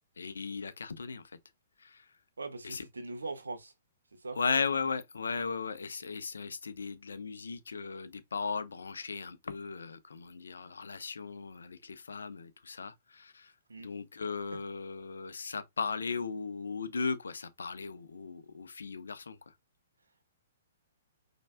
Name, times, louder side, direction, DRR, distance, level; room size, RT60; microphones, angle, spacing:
voice 1, 0.2-1.2 1.8-2.0 2.6-2.8 4.3-13.5 13.8-19.4, left 5 dB, 80° left, 0.9 m, -37 dB
voice 2, 2.4-3.7 4.1-4.4 13.7-13.9, right 3 dB, 85° right, 1.5 m, -41 dB
5.4 x 4.0 x 2.2 m
hypercardioid pair, 120°, 0 cm